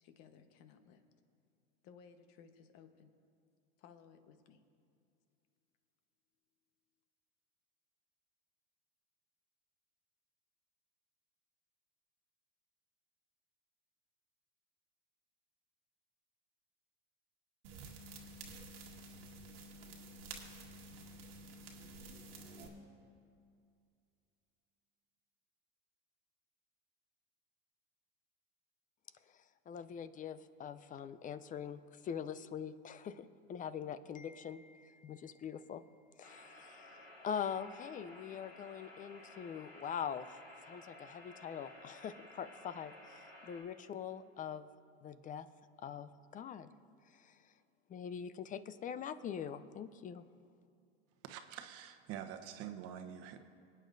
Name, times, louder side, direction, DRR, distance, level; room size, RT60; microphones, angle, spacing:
voice 1, 0.0-1.0 1.8-3.1 3.8-4.6, left 7 dB, 55° left, 8 dB, 1.2 m, -59 dB
sound 1, 17.6-22.7, right 2 dB, 80° right, 1.7 m, -51 dB
voice 2, 29.7-35.8 36.2-36.9 37.2-40.4 40.7-44.7 45.0-45.5 45.8-46.7 47.9-50.2, left 8 dB, 25° left, 13 dB, 0.5 m, -43 dB
sound 2, 36.2-43.6, left 1 dB, 90° left, 3.1 m, -55 dB
voice 3, 51.2-53.4, right 9 dB, 55° right, 6 dB, 1.0 m, -46 dB
25.5 x 8.8 x 2.6 m, 2.4 s
hypercardioid pair, 100°, 30 cm